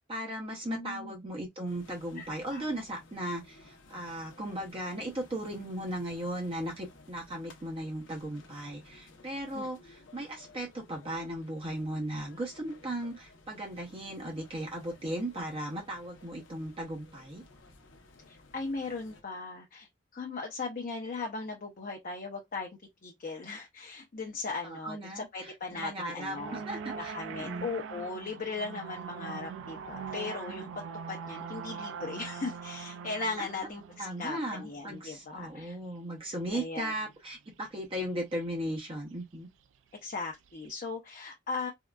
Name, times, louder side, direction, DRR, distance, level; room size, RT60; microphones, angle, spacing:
voice 1, 0.1-17.4 24.6-27.7 33.4-33.5 34.0-39.5, right 1 dB, 30° right, 0.6 m, -37 dB
voice 2, 0.7-1.1 2.2-2.7 9.5-10.0 18.3-22.7 23.0-26.6 26.9-35.8 36.5-36.9 40.0-41.7, left 4 dB, 45° left, 0.5 m, -38 dB
sound 1, 1.7-19.2, left 2 dB, 85° left, 0.7 m, -56 dB
sound 2, 26.4-36.0 36.5-37.0 37.6-37.7 38.0-38.1 38.4-38.5 38.9-39.0 40.0-40.7, right 6 dB, 75° right, 0.3 m, -42 dB
3.6 x 2.2 x 2.2 m
head